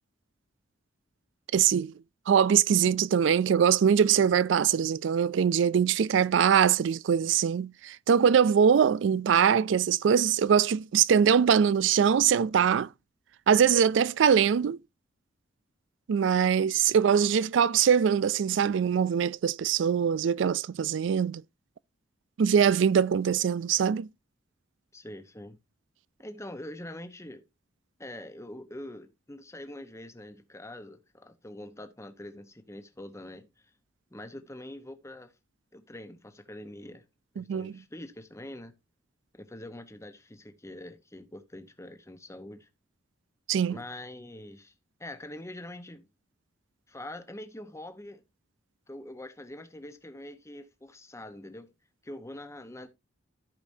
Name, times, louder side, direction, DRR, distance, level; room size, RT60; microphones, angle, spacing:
voice 1, 1.5-1.9 2.3-12.9 13.5-14.8 16.1-21.4 22.4-24.1 37.4-37.8 43.5-43.8, right 7 dB, 70° right, 0.3 m, -23 dB
voice 2, 24.9-25.6 26.2-27.4 28.0-33.5 34.1-35.3 35.7-37.1 37.3-38.7 39.3-42.7 43.7-44.7 45.0-46.1 46.9-48.2 48.9-51.7 52.0-52.9, left 1 dB, 15° left, 1.0 m, -44 dB
15.0 x 5.1 x 2.7 m
head